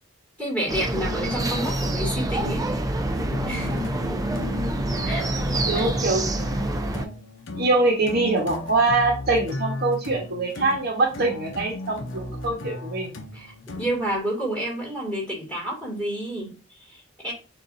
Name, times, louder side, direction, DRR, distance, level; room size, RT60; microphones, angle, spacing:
voice 1, 0.4-2.7 3.5-3.8 5.0-5.9 13.3-17.3, right 1 dB, 5° left, -2 dB, 2.3 m, -30 dB
sound 1, 0.7-7.1, right 1 dB, 20° right, 0.5 m, -26 dB
sound 2, 3.3-14.2, left 2 dB, 65° left, 0.7 m, -35 dB
voice 2, 5.6-6.6 7.0-7.2 7.5-13.2, right 3 dB, 50° right, 0 dB, 1.1 m, -24 dB
6.7 x 2.7 x 2.6 m, 0.33 s
head